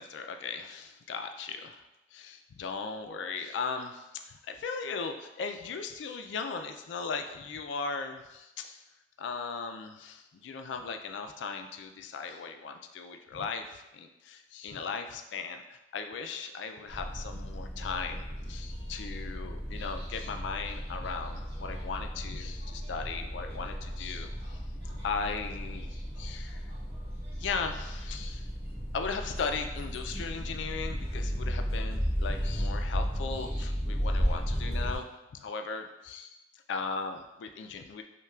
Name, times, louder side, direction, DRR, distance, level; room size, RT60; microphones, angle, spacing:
voice 1, 0.0-1.8 2.1-8.8 9.2-24.6 24.9-26.7 27.4-28.5 28.9-35.1 35.3-36.4 36.7-38.0, left 5 dB, 80° left, 6 dB, 0.3 m, -37 dB
sound 1, 16.9-35.0, equal, 35° right, 1.1 m, -34 dB
5.4 x 2.2 x 2.3 m, 0.97 s
head